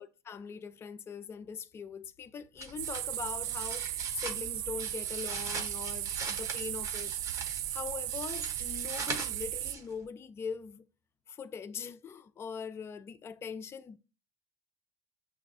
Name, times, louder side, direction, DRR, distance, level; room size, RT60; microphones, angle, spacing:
voice 1, 0.0-7.1 7.7-10.8 11.3-14.0, left 6 dB, 20° left, 0.3 m, -42 dB
sound 1, 2.6-10.0, right 3 dB, 30° right, 0.8 m, -42 dB
sound 2, 2.8-9.7, right 13 dB, 80° right, 0.4 m, -36 dB
5.7 x 2.4 x 3.5 m
cardioid pair, 130°, 12 cm